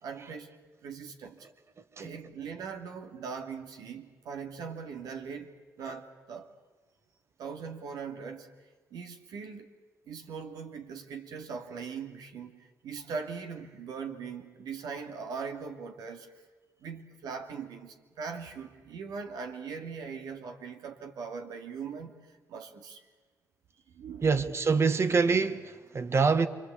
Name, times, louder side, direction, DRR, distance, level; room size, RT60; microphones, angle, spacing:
voice 1, 0.0-1.5 2.0-6.5 7.4-8.5 8.9-9.7 10.1-16.4 16.8-22.2 22.5-23.0 23.9-24.5, right 5 dB, 80° right, 2.6 m, -40 dB
voice 2, 24.2-26.5, right 4 dB, 40° right, 1.7 m, -25 dB
28.5 x 23.5 x 8.4 m
cardioid pair, 80°, 7 cm